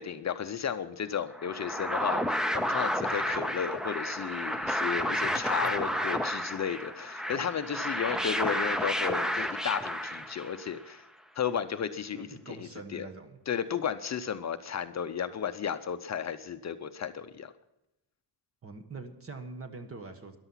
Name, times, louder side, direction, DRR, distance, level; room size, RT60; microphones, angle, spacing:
voice 1, 0.0-11.0 11.4-13.1 13.5-17.5, left 7 dB, 40° left, 9 dB, 0.6 m, -34 dB
sound 1, 1.3-10.7, equal, ahead, 0.5 m, -31 dB
voice 2, 5.2-6.0 12.1-13.4 18.6-20.4, right 3 dB, 30° right, 6 dB, 1.5 m, -44 dB
14.0 x 11.0 x 5.7 m, 0.91 s
wide cardioid pair, 160°, 42 cm